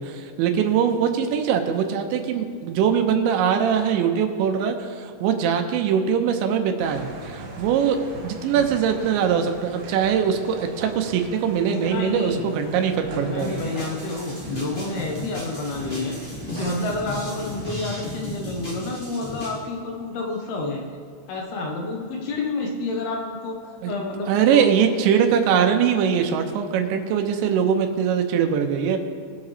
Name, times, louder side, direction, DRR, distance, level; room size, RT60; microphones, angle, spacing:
voice 1, 0.0-8.0 8.2-13.5 23.8-23.9 24.3-29.0, right 7 dB, 85° right, 5 dB, 3.1 m, -22 dB
sound 1, 6.8-18.2, right 3 dB, 65° right, 2.5 m, -40 dB
voice 2, 11.7-12.5 13.1-16.2 16.5-20.9 21.3-24.9, left 2 dB, 75° left, 0 dB, 2.5 m, -29 dB
sound 2, 13.4-19.6, left 1 dB, 25° left, 1.3 m, -35 dB
21.0 x 7.4 x 3.1 m, 2.2 s
omnidirectional pair, 5.2 m